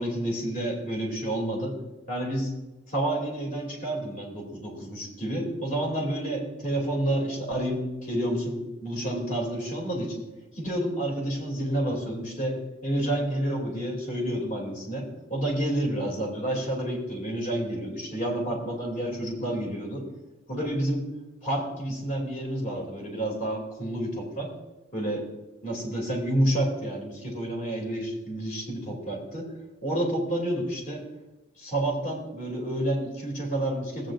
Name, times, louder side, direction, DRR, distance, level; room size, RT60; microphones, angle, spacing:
voice 1, 0.0-1.7 2.1-2.5 2.9-10.2 10.5-12.6 12.8-20.0 20.5-21.0 21.4-24.5 24.9-25.2 25.6-29.5 29.8-31.0 31.6-34.1, right 1 dB, 45° left, -1 dB, 2.9 m, -29 dB
15.5 x 8.7 x 2.6 m, 1.0 s
head